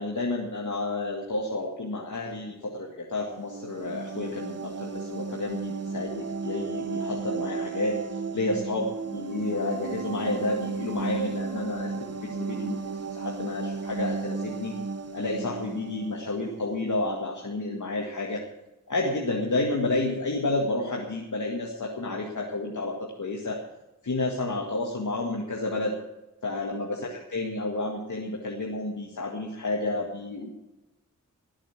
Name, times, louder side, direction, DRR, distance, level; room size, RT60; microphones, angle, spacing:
voice 1, 0.0-8.9 9.1-12.8 13.1-14.7 15.1-18.4 18.9-23.6 24.0-26.0 26.4-30.5, left 2 dB, 70° left, -1 dB, 2.1 m, -30 dB
sound 1, 3.2-16.8, right 4 dB, 50° right, 1.0 m, -34 dB
19.0 x 8.9 x 6.0 m, 1.0 s
cardioid pair, 50°, 32 cm